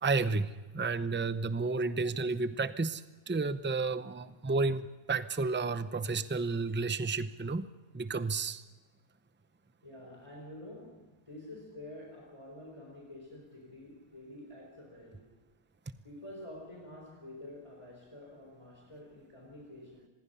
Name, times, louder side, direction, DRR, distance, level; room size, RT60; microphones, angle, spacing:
voice 1, 0.0-7.7 7.9-8.6, right 3 dB, 15° right, 12 dB, 0.3 m, -32 dB
voice 2, 9.8-15.3 16.0-20.1, left 1 dB, 20° left, -1 dB, 4.2 m, -48 dB
26.0 x 21.0 x 5.6 m, 1.2 s
omnidirectional pair, 1.5 m